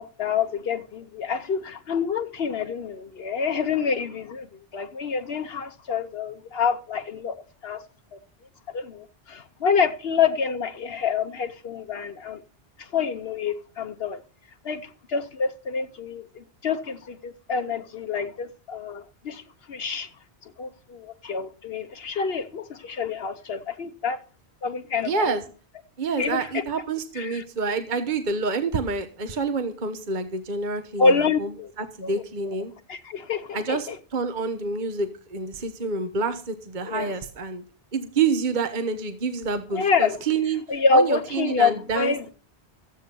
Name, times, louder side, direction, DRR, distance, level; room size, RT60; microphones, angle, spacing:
voice 1, 0.0-4.5 4.7-7.3 7.6-7.8 8.7-12.4 12.9-14.2 14.6-14.8 15.1-19.4 19.7-20.1 20.6-24.2 24.6-25.1 26.2-26.6 27.2-27.4 31.0-31.7 32.0-32.6 32.9-34.0 36.8-37.1 39.7-40.2 40.7-42.3, left 5 dB, 65° left, 1.1 m, -27 dB
voice 2, 25.0-25.4 26.0-31.5 31.8-32.7 33.5-37.6 37.9-40.6 40.9-42.3, right 4 dB, 45° right, 1.2 m, -28 dB
14.0 x 9.2 x 5.3 m
omnidirectional pair, 1.1 m